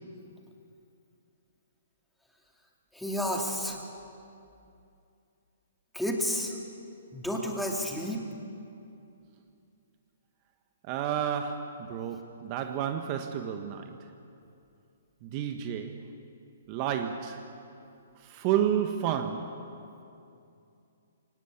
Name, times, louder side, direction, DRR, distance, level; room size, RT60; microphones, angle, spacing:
voice 1, 2.9-3.9 5.9-6.6 7.1-8.3, equal, ahead, 0 dB, 2.5 m, -31 dB
voice 2, 10.8-13.9 15.2-16.0 16.7-17.4 18.2-19.6, right 9 dB, 35° right, 6 dB, 1.3 m, -31 dB
23.0 x 19.0 x 8.6 m, 2.6 s
hypercardioid pair, 145°, 0 cm